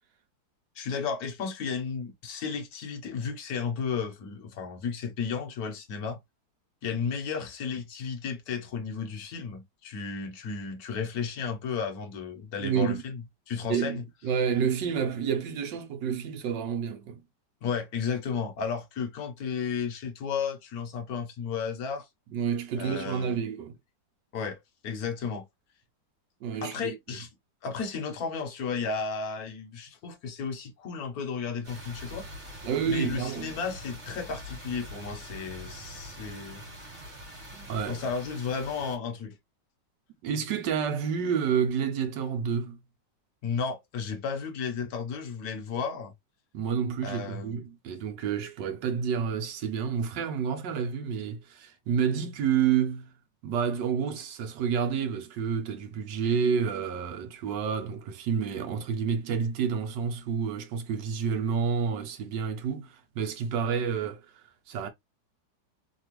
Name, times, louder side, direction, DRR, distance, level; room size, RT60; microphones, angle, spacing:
voice 1, 0.8-6.2 6.8-14.0 17.6-22.1 22.7-23.4 24.3-24.6 24.8-25.4 26.6-27.3 27.6-32.3 32.8-36.9 37.9-39.4 43.4-46.1 47.0-47.6, left 6 dB, 60° left, 1.2 m, -33 dB
voice 2, 12.6-13.0 13.7-17.2 22.3-23.7 26.4-27.2 32.6-33.5 37.5-38.0 40.2-42.8 46.5-53.1 53.4-64.9, right 7 dB, 75° right, 1.3 m, -29 dB
sound 1, 31.6-39.0, equal, 30° right, 1.7 m, -44 dB
3.3 x 2.3 x 2.9 m
omnidirectional pair, 2.0 m